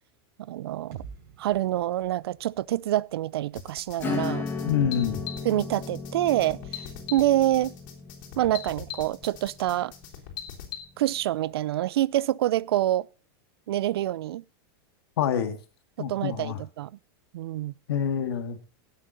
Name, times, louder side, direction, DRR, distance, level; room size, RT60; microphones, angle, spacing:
voice 1, 0.5-0.9 1.4-4.4 5.4-6.8 7.1-7.7 8.4-9.9 11.0-13.1 13.7-14.4 16.0-16.9 17.3-17.7, right 14 dB, 90° right, 0.5 m, -26 dB
sound 1, 0.9-4.8, right 8 dB, 55° right, 5.9 m, -49 dB
sound 2, 3.6-10.8, left 10 dB, 60° left, 3.4 m, -41 dB
Acoustic guitar / Strum, 4.0-10.2, left 4 dB, 15° left, 1.9 m, -36 dB
voice 2, 4.6-5.2 15.2-15.6 16.0-16.6 17.9-18.6, left 8 dB, 85° left, 1.9 m, -26 dB
18.0 x 7.4 x 4.0 m
supercardioid pair, 160°, 13 cm